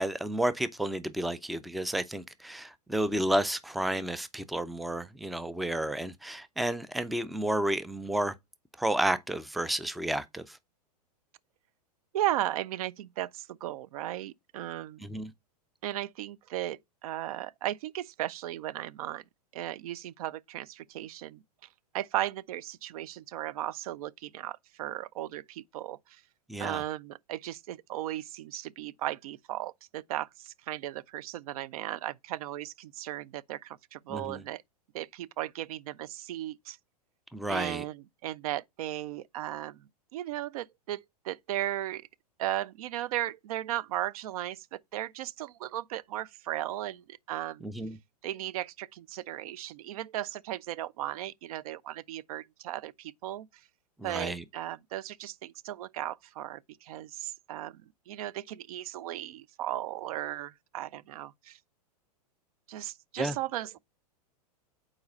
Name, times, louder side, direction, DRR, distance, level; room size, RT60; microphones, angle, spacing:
voice 1, 0.0-8.3 8.8-10.6 15.0-15.3 26.5-26.8 34.1-34.4 37.3-37.8 47.6-48.0 54.0-54.4 63.2-63.4, right 1 dB, ahead, 0.4 m, -31 dB
voice 2, 12.1-15.0 15.8-19.2 19.5-21.4 21.9-26.2 26.6-34.6 34.9-36.8 37.5-39.8 40.1-42.1 42.4-47.7 48.2-53.5 54.0-61.6 62.7-63.8, right 14 dB, 65° right, 0.4 m, -36 dB
4.7 x 4.3 x 5.2 m
hypercardioid pair, 105°, 21 cm